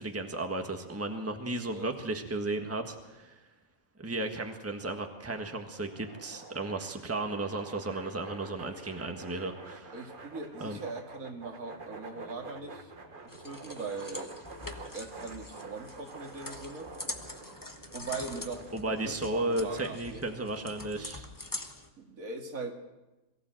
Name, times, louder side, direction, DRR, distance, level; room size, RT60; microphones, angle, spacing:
voice 1, 0.0-3.3 4.0-9.9 10.6-10.8 18.7-21.3, right 2 dB, 10° right, 4 dB, 1.5 m, -34 dB
sound 1, 5.2-19.9, right 4 dB, 40° right, 1.3 m, -49 dB
sound 2, 6.7-14.7, left 1 dB, 50° left, 3.1 m, -54 dB
voice 2, 9.9-12.9 13.4-14.4 14.9-17.0 17.9-20.3 22.0-22.7, right 3 dB, 70° right, 3 dB, 2.5 m, -40 dB
sound 3, 13.3-21.9, left 2 dB, 15° left, 1.2 m, -44 dB
22.5 x 15.5 x 7.8 m, 1.1 s
omnidirectional pair, 1.5 m